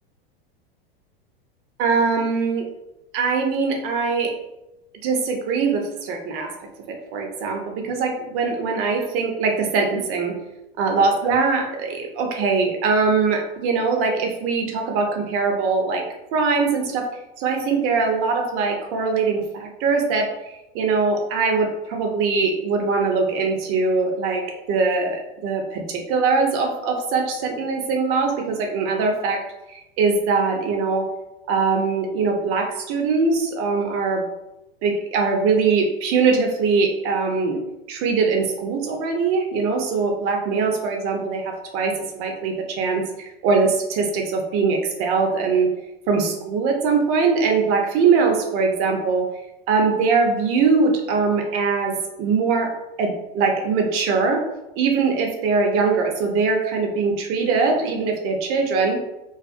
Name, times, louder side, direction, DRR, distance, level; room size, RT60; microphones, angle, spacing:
voice 1, 1.8-2.7 3.1-4.3 5.0-6.5 6.9-10.3 10.8-16.0 16.3-17.1 17.4-20.3 20.7-29.4 29.7-31.1 31.5-34.2 34.8-37.6 37.9-45.7 46.1-49.3 49.7-52.7 53.0-54.4 54.8-59.0, right 4 dB, 45° right, 2 dB, 0.6 m, -22 dB
2.4 x 2.2 x 2.4 m, 0.92 s
hypercardioid pair, 110°, 30 cm